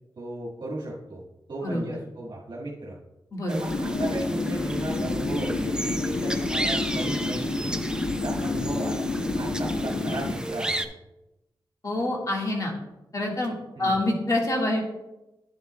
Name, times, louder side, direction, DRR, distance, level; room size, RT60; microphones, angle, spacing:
voice 1, 0.2-1.2 1.5-3.0 3.5-7.8 8.2-10.8 13.7-14.0, right 2 dB, 60° right, -5 dB, 1.6 m, -35 dB
voice 2, 3.3-3.6 11.8-12.7 13.1-14.8, left 1 dB, 40° left, -1 dB, 1.7 m, -26 dB
sound 1, 3.5-10.9, right 1 dB, 10° right, 0.6 m, -34 dB
sound 2, 3.7-10.3, left 3 dB, 60° left, 0.8 m, -29 dB
10.5 x 7.2 x 2.2 m, 0.97 s
wide cardioid pair, 85°, 9 cm